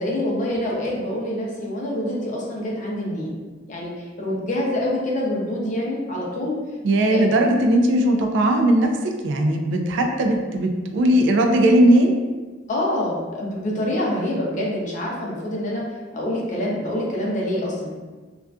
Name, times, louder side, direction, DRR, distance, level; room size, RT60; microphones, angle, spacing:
voice 1, 0.0-3.3 3.7-6.5 7.1-7.2 12.7-15.8 16.1-17.9, left 1 dB, 40° left, -3 dB, 0.5 m, -26 dB
voice 2, 6.8-12.2, right 1 dB, 65° right, 4 dB, 0.3 m, -18 dB
2.4 x 2.3 x 2.3 m, 1.3 s
head